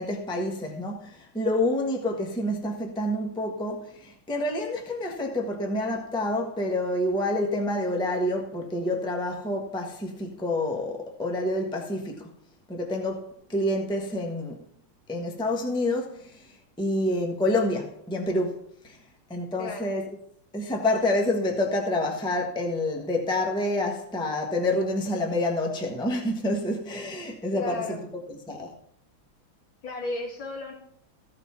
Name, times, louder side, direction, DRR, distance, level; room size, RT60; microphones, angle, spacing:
voice 1, 0.0-12.3 12.7-14.6 15.1-19.0 19.3-20.0 20.5-27.8 28.5-28.7, left 1 dB, 5° left, 1.0 m, -28 dB
voice 2, 19.6-19.9 27.5-28.0 29.8-30.7, left 3 dB, 65° left, 2.8 m, -34 dB
15.0 x 5.0 x 5.8 m
omnidirectional pair, 2.3 m